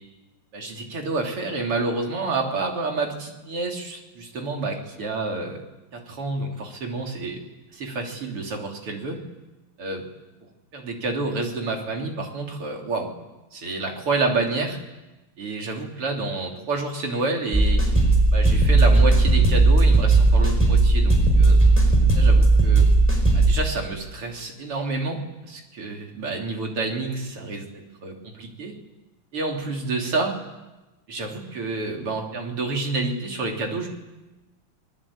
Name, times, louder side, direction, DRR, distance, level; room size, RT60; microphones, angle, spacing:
voice 1, 0.5-5.6 5.9-7.4 7.7-9.2 9.8-10.0 10.7-13.1 13.5-14.8 15.4-17.8 18.3-21.6 22.2-22.9 23.3-28.8 29.3-30.4 31.1-33.9, right 3 dB, 85° right, 2 dB, 4.1 m, -29 dB
sound 1, 17.5-23.5, right 2 dB, 5° right, 4.7 m, -16 dB
28.0 x 20.5 x 8.6 m, 1.1 s
omnidirectional pair, 2.4 m